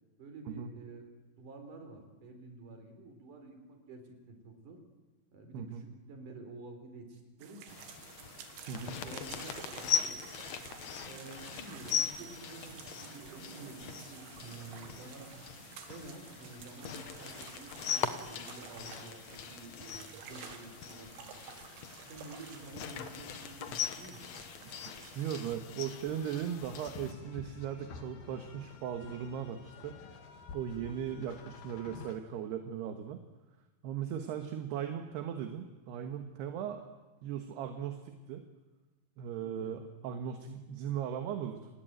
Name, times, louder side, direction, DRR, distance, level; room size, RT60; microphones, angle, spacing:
voice 1, 0.2-4.8 5.3-7.8 8.6-10.2 11.0-15.3 15.9-21.3 22.1-24.2 39.4-39.8, right 3 dB, 50° right, 5 dB, 5.2 m, -50 dB
sound 1, 7.4-25.6, right 8 dB, 90° right, 4.2 m, -51 dB
sound 2, 7.7-27.1, left 8 dB, 80° left, 1.5 m, -40 dB
voice 2, 25.0-30.0 30.5-33.2 33.8-36.8 37.2-38.4 39.2-41.7, right 9 dB, 70° right, 6 dB, 3.3 m, -38 dB
sound 3, 25.2-32.2, left 5 dB, 60° left, 3.8 m, -50 dB
29.0 x 20.5 x 9.1 m, 1.2 s
omnidirectional pair, 5.1 m